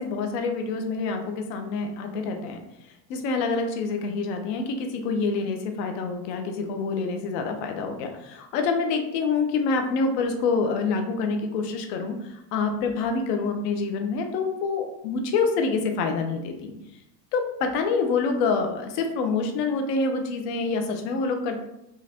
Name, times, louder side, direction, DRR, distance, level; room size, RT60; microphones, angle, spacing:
voice 1, 0.0-2.6 3.1-16.7 17.3-21.6, left 4 dB, 90° left, 5 dB, 0.9 m, -26 dB
3.8 x 3.1 x 4.2 m, 0.84 s
cardioid pair, 120°, 48 cm